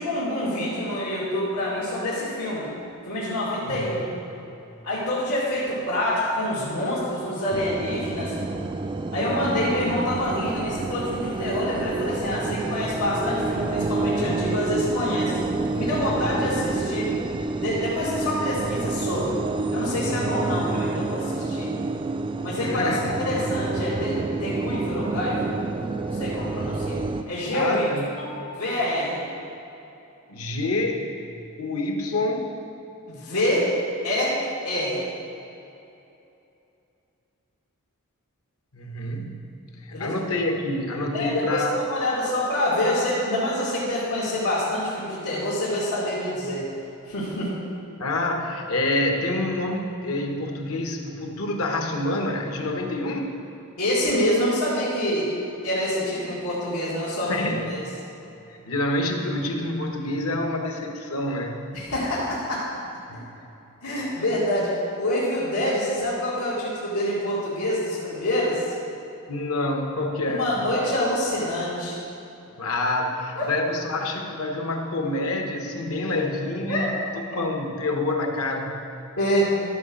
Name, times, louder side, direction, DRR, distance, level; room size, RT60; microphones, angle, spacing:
voice 1, 0.0-2.7 3.0-4.0 4.8-8.3 9.1-15.4 15.7-17.1 17.6-19.4 19.7-21.7 22.4-25.6 26.0-27.9 28.1-29.2 33.1-33.7 34.0-34.4 34.6-35.0 39.9-40.1 41.1-46.7 47.1-47.5 53.8-55.3 55.6-57.8 61.7-62.7 63.8-68.7 70.2-72.0 73.4-73.5 76.1-76.2 76.7-76.9 79.2-79.5, left 1 dB, 90° left, -10 dB, 2.5 m, -26 dB
sound 1, 7.5-27.2, right 3 dB, 20° right, 0.3 m, -28 dB
voice 2, 22.6-23.3 27.5-28.0 30.3-31.1 31.6-32.5 38.7-41.8 48.0-53.3 57.3-57.7 58.5-61.7 63.1-63.3 69.3-70.5 72.6-77.0 77.3-78.8, left 2 dB, 70° left, 3 dB, 1.1 m, -27 dB
13.0 x 5.0 x 6.5 m, 2.9 s
head